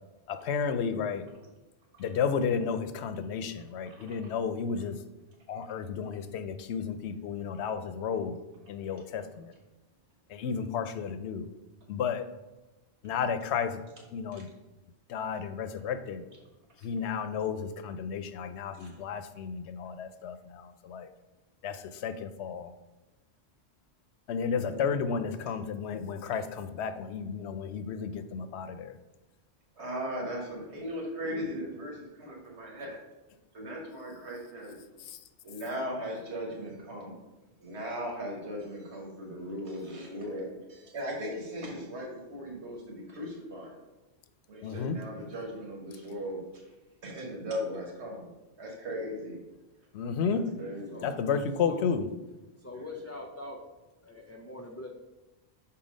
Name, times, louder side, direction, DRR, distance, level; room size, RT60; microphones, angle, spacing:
voice 1, 0.3-1.2 2.0-5.0 5.5-8.4 8.7-9.5 10.3-11.4 11.9-12.2 13.0-13.7 14.1-14.5 15.1-16.2 16.8-17.6 17.8-21.1 21.6-21.8 22.0-22.7 24.3-28.9 44.6-45.0 49.9-50.5 51.0-52.1, left 6 dB, 80° left, 11 dB, 0.9 m, -32 dB
voice 2, 3.8-4.3 14.3-14.4 18.8-18.9 24.6-24.8 29.8-33.0 33.5-34.8 35.4-37.1 37.6-43.7 44.5-46.6 47.0-48.3 48.6-49.4 50.3-51.1 52.7-52.9, equal, 85° right, -1 dB, 1.8 m, -38 dB
voice 3, 52.6-53.6 54.0-54.9, left 2 dB, 25° left, -1 dB, 0.3 m, -42 dB
5.8 x 4.3 x 5.1 m, 1.1 s
omnidirectional pair, 1.1 m